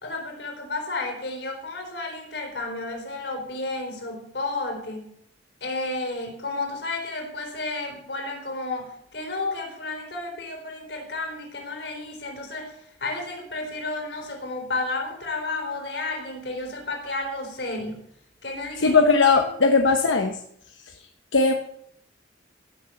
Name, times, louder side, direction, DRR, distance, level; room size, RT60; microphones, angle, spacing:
voice 1, 0.0-5.1 5.6-12.7 13.0-18.0 18.4-19.0 19.4-19.5, left 2 dB, 60° left, 3 dB, 4.1 m, -32 dB
voice 2, 18.8-20.4 21.3-21.5, left 4 dB, 80° left, 5 dB, 1.2 m, -18 dB
16.5 x 7.1 x 7.8 m, 0.69 s
head